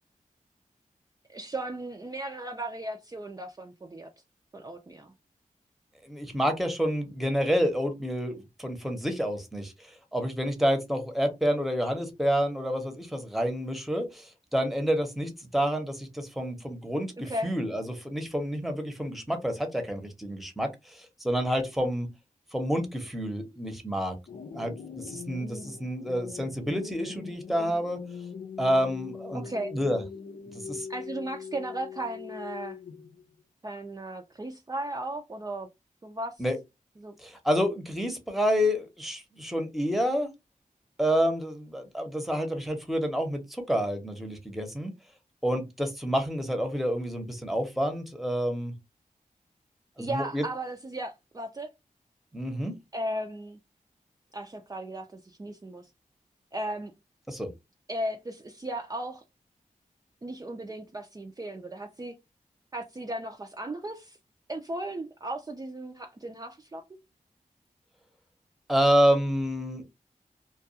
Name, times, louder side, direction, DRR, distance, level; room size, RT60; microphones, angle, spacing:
voice 1, 1.3-4.1 4.5-5.1 17.2-17.5 29.3-29.7 30.9-32.8 33.6-35.7 36.0-36.3 37.0-37.2 50.0-51.7 52.9-53.6 54.3-55.9 56.5-56.9 57.9-59.2 60.2-62.1 62.7-64.2 64.5-66.8, right 1 dB, 25° right, 0.4 m, -36 dB
voice 2, 6.0-22.1 22.5-24.2 24.5-28.0 28.6-29.4 29.7-30.0 30.5-30.9 36.4-36.6 37.2-40.3 41.0-44.9 45.4-48.7 50.0-50.4 52.3-52.7 57.3-57.5 68.7-69.8, equal, ahead, 0.8 m, -28 dB
sound 1, 24.3-33.2, left 6 dB, 90° left, 0.6 m, -42 dB
2.3 x 2.3 x 2.7 m
wide cardioid pair, 60°, 15 cm